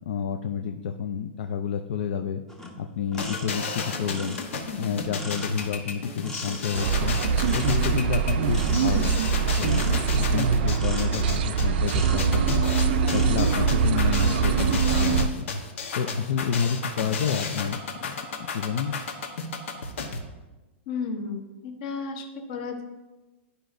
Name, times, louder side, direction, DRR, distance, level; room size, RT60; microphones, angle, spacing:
voice 1, 0.1-2.4 2.8-4.4 4.8-7.2 7.5-9.1 9.4-9.8 10.2-12.6 13.1-15.5 15.9-19.0, left 7 dB, 55° left, 6 dB, 0.4 m, -29 dB
sound 1, 2.5-12.5 12.9-13.5, left 1 dB, 5° left, 0.7 m, -42 dB
sound 2, 3.2-20.2, left 4 dB, 80° left, 1.1 m, -32 dB
sound 3, 6.7-15.3, right 6 dB, 50° right, 0.4 m, -23 dB
voice 2, 20.9-22.8, left 4 dB, 40° left, 5 dB, 0.9 m, -33 dB
11.5 x 5.1 x 2.6 m, 1.1 s
supercardioid pair, 175°, 7 cm